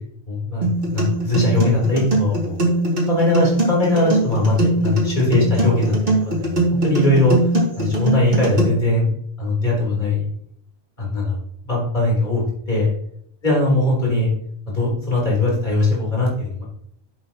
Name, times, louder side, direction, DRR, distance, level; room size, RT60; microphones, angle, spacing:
voice 1, 0.3-2.6 3.1-7.4 7.8-9.1 9.4-10.3 11.0-11.4 11.6-12.4 12.7-12.9 13.4-14.3 14.7-16.7, left 2 dB, 45° left, -4 dB, 3.8 m, -20 dB
sound 1, 0.6-8.6, right 2 dB, 60° right, 2.6 m, -21 dB
11.0 x 7.7 x 2.9 m, 0.70 s
omnidirectional pair, 1.1 m